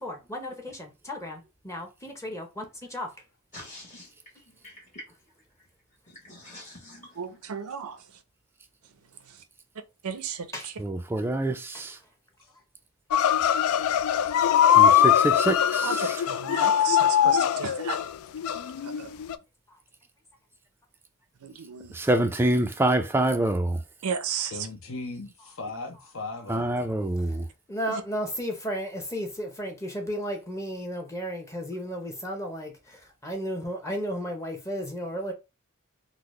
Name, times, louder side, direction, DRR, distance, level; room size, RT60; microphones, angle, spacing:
voice 1, 0.0-2.6 2.9-3.1 10.5-10.7 27.7-32.7 33.2-35.3, equal, 15° left, 0.7 m, -33 dB
voice 2, 3.5-4.1 4.6-5.0 6.1-7.2, left 1 dB, 35° left, 1.1 m, -45 dB
voice 3, 7.2-8.0 9.3-9.4 10.0-10.8 15.8-18.0 18.8-19.1 21.4-22.0 24.0-24.7 27.9-28.0, right 6 dB, 90° right, 0.5 m, -34 dB
voice 4, 10.8-12.0 14.7-16.2 21.9-23.8 26.5-27.5, right 1 dB, 10° right, 0.3 m, -26 dB
sound 1, 13.1-19.4, left 9 dB, 80° left, 0.3 m, -22 dB
voice 5, 24.5-26.8, left 3 dB, 65° left, 0.9 m, -37 dB
3.9 x 2.0 x 3.1 m
head